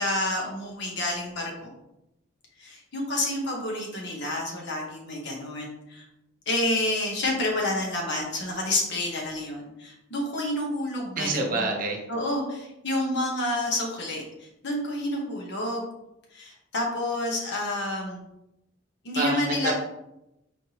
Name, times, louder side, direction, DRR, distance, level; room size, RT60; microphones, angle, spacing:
voice 1, 0.0-1.7 2.6-6.0 6.5-11.7 12.1-15.8 16.3-18.2 19.0-19.7, left 1 dB, 60° left, -1 dB, 1.1 m, -29 dB
voice 2, 11.2-12.0 19.2-19.7, right 2 dB, 45° right, 1 dB, 0.8 m, -27 dB
4.4 x 3.3 x 2.9 m, 0.87 s
head